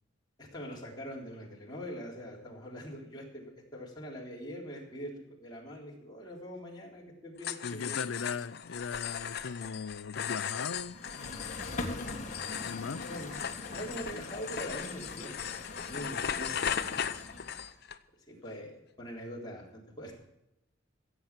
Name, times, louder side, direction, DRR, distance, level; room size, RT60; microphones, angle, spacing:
voice 1, 0.4-8.0 12.5-12.7 13.0-13.4 13.7-15.3 15.7-16.7 18.3-20.1, equal, 20° left, 3.8 m, -43 dB
sound 1, 7.4-18.0, left 8 dB, 55° left, 0.7 m, -38 dB
voice 2, 7.6-11.4 12.6-13.1, left 5 dB, 85° left, 0.5 m, -38 dB
sound 2, 10.7-17.7, left 2 dB, 40° left, 2.0 m, -42 dB
16.0 x 8.0 x 7.4 m
head